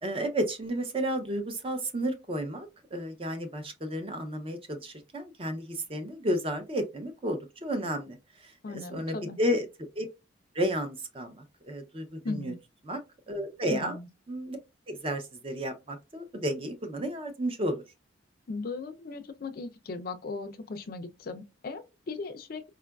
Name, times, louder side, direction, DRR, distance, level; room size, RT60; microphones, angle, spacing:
voice 1, 0.0-9.7 10.0-10.1 10.5-12.5 12.8-13.0 13.3-14.0 14.3-14.6 14.9-17.8, equal, 30° right, 0.5 m, -32 dB
voice 2, 8.6-9.4 12.2-12.6 13.7-14.1 18.5-22.6, left 3 dB, 50° left, 0.4 m, -37 dB
4.5 x 2.4 x 2.2 m
head